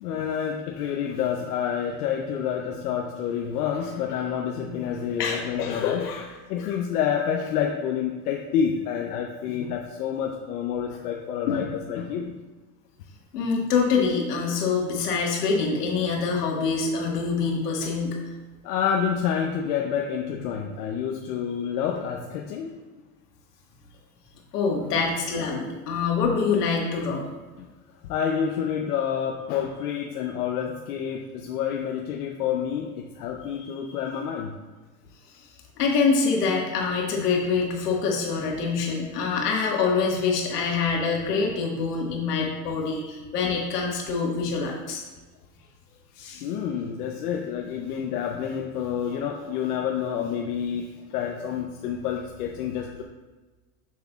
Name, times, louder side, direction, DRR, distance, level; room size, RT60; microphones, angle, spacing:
voice 1, 0.0-12.4 18.6-22.7 27.6-27.7 28.1-34.5 46.4-53.0, left 8 dB, 75° left, 1 dB, 0.8 m, -28 dB
voice 2, 13.3-18.2 24.5-27.3 33.6-33.7 35.8-45.0 46.2-46.5, left 5 dB, 90° left, -1 dB, 1.8 m, -25 dB
6.7 x 6.5 x 2.4 m, 1.3 s
supercardioid pair, 130°, 46 cm